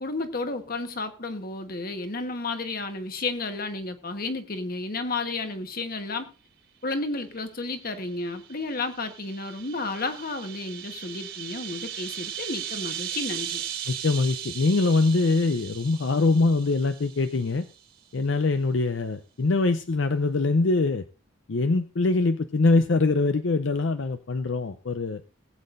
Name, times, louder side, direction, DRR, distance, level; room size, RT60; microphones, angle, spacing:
voice 1, 0.0-6.3 6.8-13.6, left 3 dB, 50° left, 1.3 m, -32 dB
sound 1, 7.8-17.6, right 10 dB, 75° right, 3.5 m, -37 dB
voice 2, 13.9-17.6 18.1-21.0 21.5-25.2, left 3 dB, 70° left, 0.6 m, -23 dB
19.5 x 8.6 x 2.6 m
head